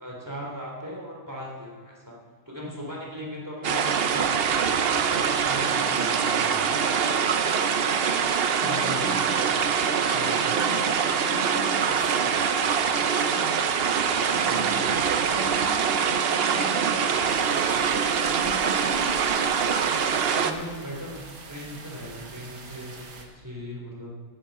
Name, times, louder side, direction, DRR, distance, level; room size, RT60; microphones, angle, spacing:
voice 1, 0.0-2.1 2.4-6.7 8.6-9.1 10.1-10.6 14.4-14.8 20.3-21.2 21.5-24.1, equal, 10° right, -3 dB, 3.3 m, -38 dB
sound 1, 3.6-20.5, right 6 dB, 70° right, 0.5 m, -24 dB
sound 2, 5.7-16.5, left 1 dB, 85° left, 4.1 m, -47 dB
voice 2, 8.5-9.4 10.5-12.6 13.2-13.6 14.1-17.5 18.0-19.5, left 1 dB, 20° left, 0 dB, 1.0 m, -40 dB
sound 3, 17.2-23.3, right 3 dB, 55° right, 1.8 m, -45 dB
11.0 x 10.0 x 7.2 m, 1.5 s
omnidirectional pair, 1.9 m